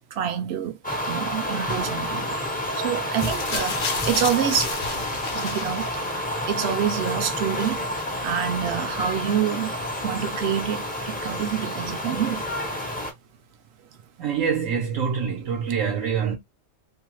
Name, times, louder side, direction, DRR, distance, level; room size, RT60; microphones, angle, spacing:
voice 1, 0.1-0.8 1.1-2.4 2.8-4.7 5.3-5.9 6.5-7.8 8.2-9.7 10.0-12.4, right 9 dB, 65° right, 0.8 m, -27 dB
sound 1, 0.8-13.1, left 1 dB, 10° left, 0.4 m, -29 dB
sound 2, 3.1-6.4 7.3-7.4, left 6 dB, 60° left, 0.7 m, -32 dB
voice 2, 14.2-16.4, right 7 dB, 85° right, 1.2 m, -25 dB
2.7 x 2.1 x 3.0 m
omnidirectional pair, 1.3 m